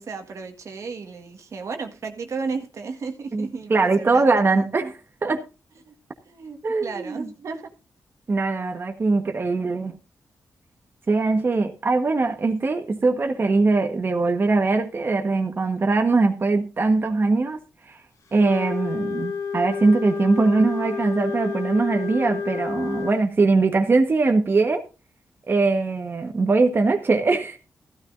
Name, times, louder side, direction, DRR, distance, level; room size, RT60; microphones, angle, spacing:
voice 1, 0.0-4.5 5.9-6.0 6.2-7.7, right 4 dB, 65° right, 1.7 m, -34 dB
voice 2, 3.3-5.4 6.6-7.3 8.3-10.0 11.1-17.6 17.9-18.0 18.3-24.8 25.5-27.6, right 3 dB, 40° right, 1.3 m, -21 dB
Wind instrument woodwind instrument, 18.4-23.2, left 6 dB, 70° left, 1.5 m, -30 dB
14.5 x 12.5 x 2.6 m
cardioid pair, 85°, 6 cm